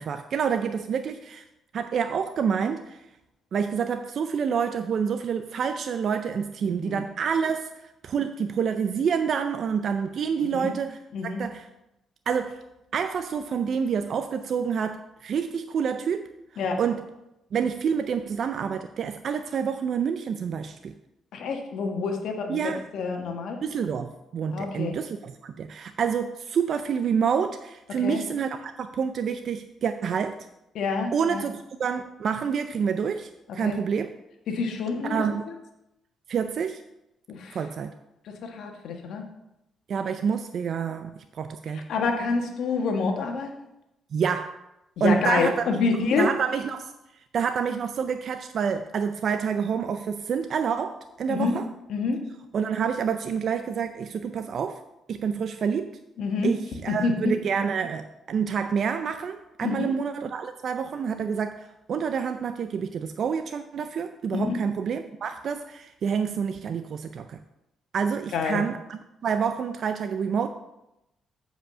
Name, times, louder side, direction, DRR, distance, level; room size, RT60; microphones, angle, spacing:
voice 1, 0.0-1.4 1.7-3.0 3.5-11.7 12.3-12.6 12.9-17.0 17.5-20.9 22.5-22.8 23.6-30.4 31.1-34.1 35.0-35.5 36.3-36.8 37.5-37.9 39.9-41.9 44.1-44.6 45.0-45.6 45.9-51.7 52.5-54.8 55.1-55.9 56.4-67.4 67.9-70.5, right 6 dB, 60° right, 9 dB, 0.4 m, -28 dB
voice 2, 6.6-7.0 10.4-10.8 11.1-11.4 16.6-16.8 21.3-23.6 24.5-25.0 28.0-28.2 30.7-31.4 33.6-33.8 34.5-35.2 37.3-37.6 38.2-39.3 41.7-43.5 45.0-46.3 51.3-51.6 51.9-52.2 56.2-56.6 56.9-57.3 59.6-59.9 64.3-64.6 68.3-68.6, left 4 dB, 75° left, 3 dB, 1.4 m, -27 dB
7.7 x 5.0 x 6.2 m, 0.90 s
cardioid pair, 90°, 0 cm